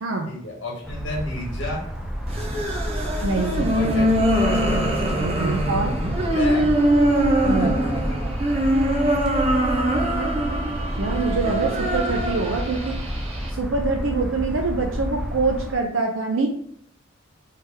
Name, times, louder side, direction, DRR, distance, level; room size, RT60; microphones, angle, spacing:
voice 1, 0.3-1.8 3.6-4.3 6.3-6.7 7.6-8.3, left 1 dB, 65° left, -3 dB, 1.8 m, -31 dB
sound 1, 0.8-15.7, equal, ahead, 0.5 m, -29 dB
sound 2, 2.3-13.5, right 1 dB, 30° right, 0.8 m, -23 dB
voice 2, 3.2-3.9 5.1-5.9 7.4-7.8 11.0-13.0 13.5-16.5, right 3 dB, 75° right, 2 dB, 0.6 m, -25 dB
4.4 x 3.4 x 3.4 m, 0.67 s
head